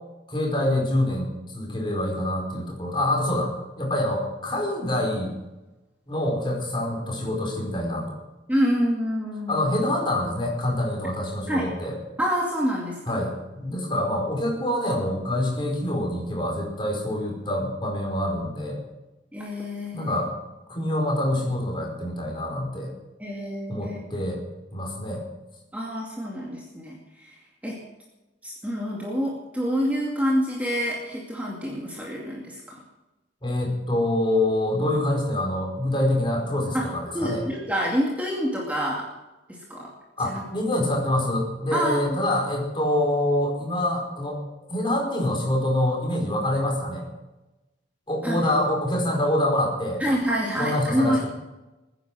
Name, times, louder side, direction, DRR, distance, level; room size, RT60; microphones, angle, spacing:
voice 1, 0.3-1.3 1.5-5.3 6.1-8.1 9.5-12.0 13.1-18.8 19.9-20.3 20.7-22.9 23.7-24.4 24.7-25.2 33.4-37.4 40.2-44.4 44.7-47.0 48.1-50.0 50.6-51.3, left 1 dB, 25° left, 0 dB, 5.0 m, -26 dB
voice 2, 8.5-9.8 11.5-11.7 12.2-13.2 19.3-20.2 23.2-24.0 25.7-27.8 28.4-32.8 36.7-36.9 37.1-39.1 39.5-39.9 40.2-40.4 41.7-42.0 48.2-48.5 50.0-51.2, equal, 10° right, -3 dB, 2.3 m, -27 dB
21.5 x 10.0 x 6.3 m, 1.0 s
head